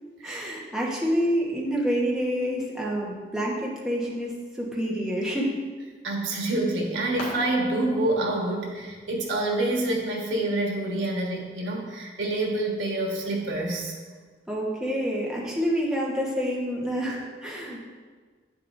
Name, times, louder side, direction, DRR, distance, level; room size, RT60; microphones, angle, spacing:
voice 1, 0.2-5.5 14.5-17.8, equal, 5° right, -5 dB, 1.2 m, -28 dB
voice 2, 6.0-13.9, right 2 dB, 90° right, -1 dB, 1.5 m, -27 dB
sound 1, 6.3-11.4, left 1 dB, 55° left, 2.0 m, -45 dB
8.6 x 7.1 x 2.6 m, 1.5 s
head